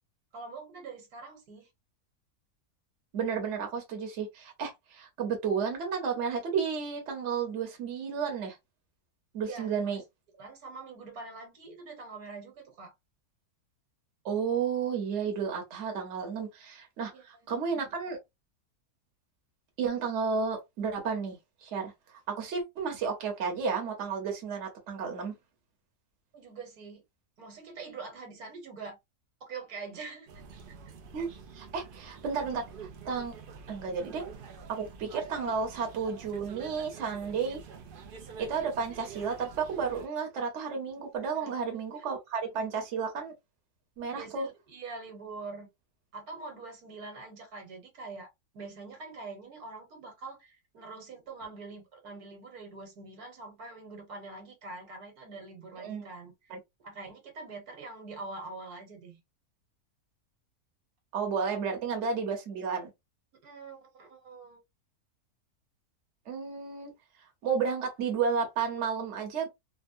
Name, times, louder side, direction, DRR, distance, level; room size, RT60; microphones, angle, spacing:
voice 1, 0.3-1.7 9.4-9.9 10.3-12.9 17.0-17.2 26.3-27.0 27.4-29.0 29.5-30.3 41.3-42.0 44.1-45.7 46.1-56.5 56.8-59.2 63.4-64.6, right 3 dB, 75° right, 1.6 m, -44 dB
voice 2, 3.1-8.6 9.3-10.0 14.2-18.2 19.8-25.3 31.1-31.3 31.5-32.7 33.1-33.3 33.7-34.3 34.7-37.6 38.4-43.3 44.0-44.5 55.8-56.1 56.5-56.6 61.1-62.9 66.3-66.9 67.4-69.5, right 6 dB, 55° right, 1.1 m, -32 dB
sound 1, 30.3-40.1, right 5 dB, 90° right, 0.4 m, -47 dB
3.5 x 2.1 x 2.5 m
omnidirectional pair, 1.6 m